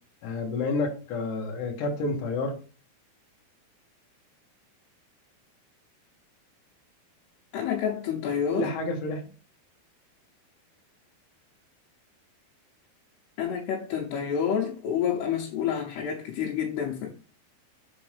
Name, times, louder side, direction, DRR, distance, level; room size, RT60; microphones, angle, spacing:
voice 1, 0.2-2.6 8.5-9.2, left 3 dB, 60° left, 2.4 m, -29 dB
voice 2, 7.5-8.7 13.4-17.1, left 8 dB, 85° left, 3.0 m, -28 dB
6.4 x 4.4 x 3.4 m
omnidirectional pair, 4.6 m